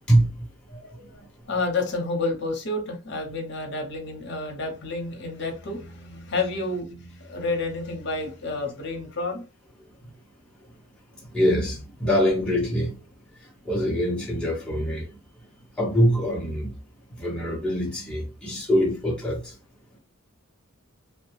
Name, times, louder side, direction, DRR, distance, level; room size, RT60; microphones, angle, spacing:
voice 1, 0.1-0.5 1.2-1.3 10.0-10.1 11.3-13.0 13.4-15.1 15.8-16.7 17.1-19.5, equal, 5° left, 0.8 m, -24 dB
voice 2, 0.7-1.2 1.5-9.5, left 3 dB, 55° left, 0.8 m, -30 dB
3.0 x 2.2 x 3.1 m
head